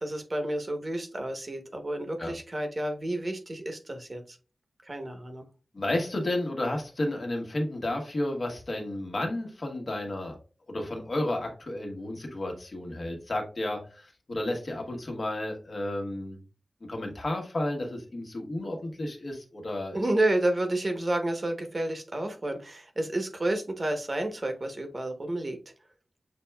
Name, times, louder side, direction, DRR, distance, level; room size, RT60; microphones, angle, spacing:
voice 1, 0.0-4.4 4.8-5.4 19.9-25.6, right 1 dB, 40° right, 5 dB, 1.0 m, -30 dB
voice 2, 5.7-10.4 10.7-16.4 16.9-20.0, left 1 dB, 55° left, 2 dB, 1.3 m, -32 dB
6.6 x 3.3 x 2.3 m, 0.34 s
wide cardioid pair, 85°, 0 cm